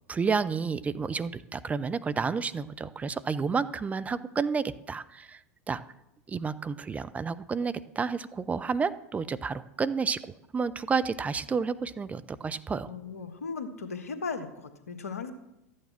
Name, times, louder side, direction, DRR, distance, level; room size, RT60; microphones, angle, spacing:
voice 1, 0.1-5.4 5.7-5.8 6.3-10.2 10.5-12.9, right 5 dB, 15° right, 13 dB, 0.6 m, -30 dB
voice 2, 12.9-15.3, left 4 dB, 75° left, 9 dB, 1.4 m, -37 dB
13.5 x 9.3 x 5.9 m, 0.86 s
figure-of-eight pair, 85°, 8 cm